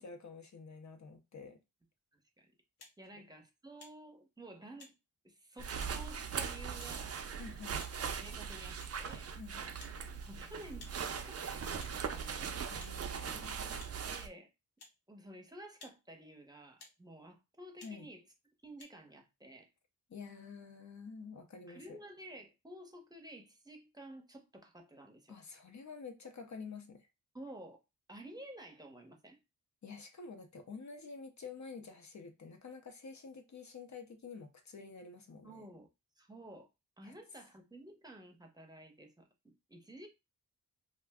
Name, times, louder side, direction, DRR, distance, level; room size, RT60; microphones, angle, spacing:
voice 1, 0.0-1.6 7.4-7.8 9.4-9.7 12.7-13.8 17.8-18.1 20.1-22.0 25.3-27.1 29.8-35.7 37.0-37.1, left 5 dB, 45° left, 0.6 m, -49 dB
voice 2, 2.1-2.5 3.0-4.9 5.2-7.2 8.2-9.4 10.3-12.5 14.1-14.5 15.1-18.2 18.6-19.7 21.7-25.3 27.3-27.8 28.1-29.4 35.4-35.9 36.2-36.7 37.0-40.1, right 1 dB, 10° right, 0.7 m, -52 dB
sound 1, 2.8-3.0 3.8-4.0 4.8-4.9 5.8-6.0 6.8-6.9 7.8-8.0 8.8-9.0 9.8-10.0 10.8-11.0 11.8-12.0 12.8-13.0 13.8-13.9 14.8-15.0 15.8-16.0 16.8-17.0 17.8-17.9 18.8-18.9, left 3 dB, 75° left, 0.9 m, -55 dB
sound 2, 5.6-14.3, right 6 dB, 40° right, 0.4 m, -40 dB
2.4 x 2.1 x 3.5 m
cardioid pair, 80°, 39 cm